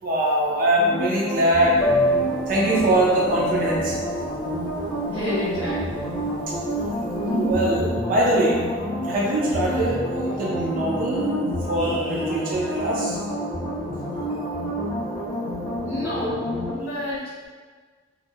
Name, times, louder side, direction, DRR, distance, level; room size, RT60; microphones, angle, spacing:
voice 1, 0.0-1.7 2.5-4.0 7.2-8.6 8.9-13.2, right 1 dB, 50° right, -4 dB, 0.4 m, -22 dB
sound 1, 0.8-16.7, equal, ahead, 0.7 m, -29 dB
Piano, 1.8-7.7, equal, 25° left, 0.3 m, -28 dB
voice 2, 5.1-6.0 15.7-17.5, left 1 dB, 90° left, -11 dB, 0.6 m, -30 dB
2.3 x 2.0 x 2.7 m, 1.5 s
head